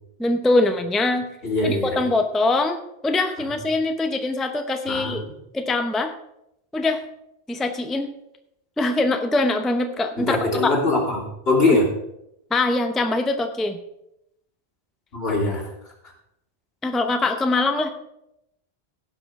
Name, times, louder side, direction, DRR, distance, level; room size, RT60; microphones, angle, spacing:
voice 1, 0.2-1.3 1.6-2.8 3.0-5.2 5.5-6.1 6.7-7.0 7.5-8.1 8.8-10.7 12.5-13.8 16.8-17.9, left 2 dB, ahead, 6 dB, 0.6 m, -23 dB
voice 2, 1.4-2.0 4.9-5.1 10.2-11.9 15.1-15.7, left 2 dB, 70° left, -4 dB, 3.4 m, -22 dB
16.5 x 5.8 x 4.7 m, 0.82 s
omnidirectional pair, 1.1 m